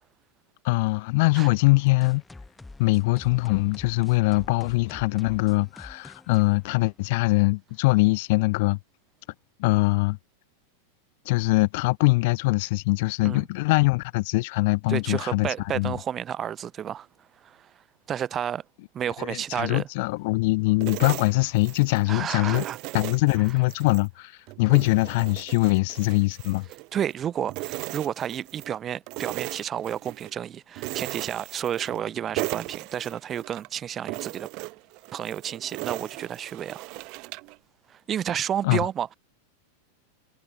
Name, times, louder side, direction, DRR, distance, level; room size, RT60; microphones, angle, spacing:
voice 1, 0.6-2.2 2.8-8.8 9.6-10.2 11.3-15.5 15.7-16.0 19.2-22.6 22.9-24.3 24.6-26.6 38.6-38.8, left 24 dB, 50° left, 0.5 m, -22 dB
sound 1, 2.0-7.5, left 2 dB, 10° left, 0.9 m, -47 dB
voice 2, 14.9-17.1 17.4-17.7 18.1-18.6 18.9-19.9 22.1-22.8 26.9-34.5 35.1-36.9 37.9-39.1, right 9 dB, 25° right, 0.6 m, -31 dB
sound 2, 20.8-22.1 22.5-24.1 24.5-27.2 27.5-28.7 29.1-30.3 30.8-32.1 32.4-33.7 34.1-37.6, right 27 dB, 40° right, 1.0 m, -37 dB
figure-of-eight pair, 90°, 0 cm